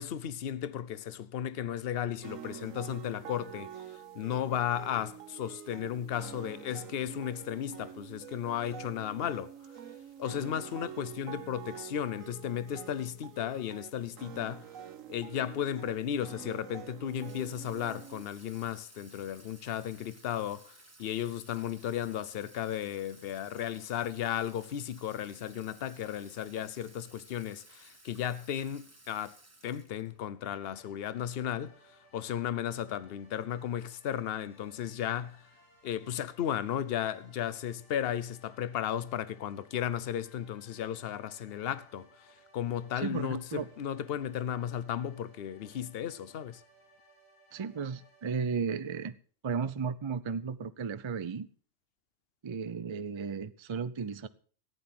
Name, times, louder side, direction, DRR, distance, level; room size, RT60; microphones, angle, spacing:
voice 1, 0.0-3.7 4.1-9.5 10.2-14.7 15.1-29.4 29.6-31.7 32.1-35.5 35.8-42.1 42.5-46.6, left 10 dB, 55° left, 0.8 m, -35 dB
sound 1, 2.2-18.2, right 9 dB, 80° right, 1.3 m, -47 dB
Water tap faucet / Sink (filling or washing), 17.1-30.2, right 2 dB, 15° right, 0.9 m, -58 dB
sound 2, 30.5-48.5, right 2 dB, 20° left, 5.3 m, -62 dB
voice 2, 43.0-43.7 47.5-49.1 49.4-51.5 52.4-54.3, right 5 dB, 35° right, 0.4 m, -34 dB
14.0 x 9.5 x 5.9 m
omnidirectional pair, 1.4 m